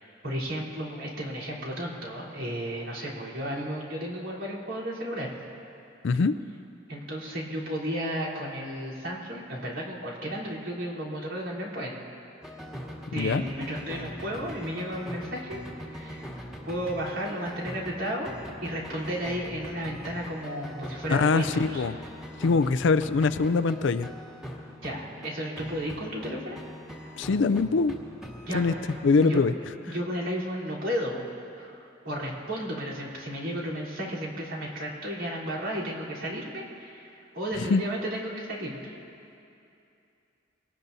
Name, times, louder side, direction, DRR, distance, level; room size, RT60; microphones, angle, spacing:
voice 1, 0.2-5.4 6.9-11.9 13.1-15.6 15.9-16.3 16.6-18.3 18.6-21.8 24.8-26.6 28.5-28.8 29.2-29.5 29.9-31.3 31.6-31.7 32.0-38.9, equal, 75° right, -7 dB, 3.6 m, -33 dB
voice 2, 6.0-6.3 13.2-13.4 21.1-22.0 22.4-24.1 27.2-27.9 28.5-28.7 29.0-29.5 37.6-37.8, left 4 dB, 65° left, 13 dB, 0.4 m, -23 dB
sound 1, 12.4-25.3 25.6-29.4, equal, ahead, 1.7 m, -42 dB
23.5 x 18.5 x 2.7 m, 2.7 s
head